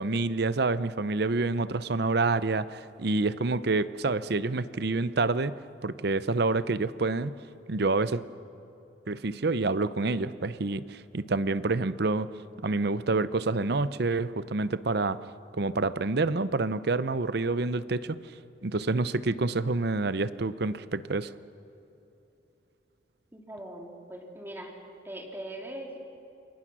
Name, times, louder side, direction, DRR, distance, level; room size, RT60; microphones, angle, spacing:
voice 1, 0.0-7.4 7.7-8.2 9.1-12.3 12.6-15.2 15.6-18.2 18.6-21.3, right 3 dB, 60° right, 15 dB, 0.7 m, -28 dB
voice 2, 23.3-24.7 25.0-26.0, right 1 dB, 10° right, 0 dB, 3.1 m, -41 dB
28.5 x 22.5 x 6.2 m, 2.9 s
head